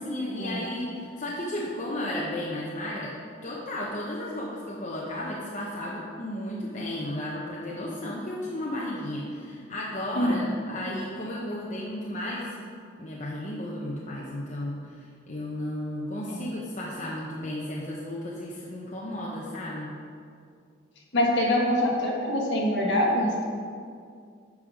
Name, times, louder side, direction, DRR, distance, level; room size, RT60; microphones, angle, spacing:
voice 1, 0.0-3.1 3.4-12.5 13.0-19.9, left 1 dB, 40° left, -4 dB, 0.8 m, -34 dB
voice 2, 21.1-23.5, left 1 dB, 65° left, -2 dB, 1.5 m, -24 dB
8.2 x 5.4 x 5.0 m, 2.2 s
head